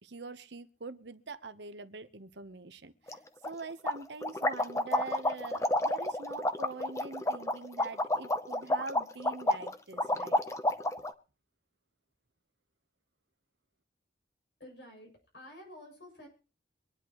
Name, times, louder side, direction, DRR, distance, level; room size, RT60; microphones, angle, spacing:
voice 1, 0.0-3.2 3.4-10.4, right 4 dB, 70° right, 11 dB, 1.0 m, -44 dB
sound 1, 3.1-3.2 3.4-3.5 3.9-11.1, left 1 dB, 15° left, 0.7 m, -30 dB
voice 2, 14.6-16.3, left 1 dB, 70° left, 2 dB, 7.5 m, -50 dB
25.0 x 10.0 x 3.1 m, 0.35 s
head